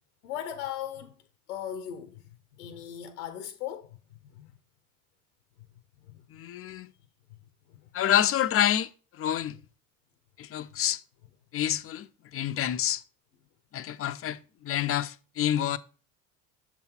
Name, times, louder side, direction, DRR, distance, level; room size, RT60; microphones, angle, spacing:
voice 1, 0.2-1.1 1.5-3.9 4.3-4.5 6.0-6.2, left 10 dB, 80° left, 0.8 m, -38 dB
voice 2, 6.3-6.9 7.9-9.6 10.4-11.0 11.5-13.0 13.7-15.8, left 11 dB, 35° left, 0.5 m, -28 dB
7.0 x 4.0 x 4.4 m
hypercardioid pair, 70°, 43 cm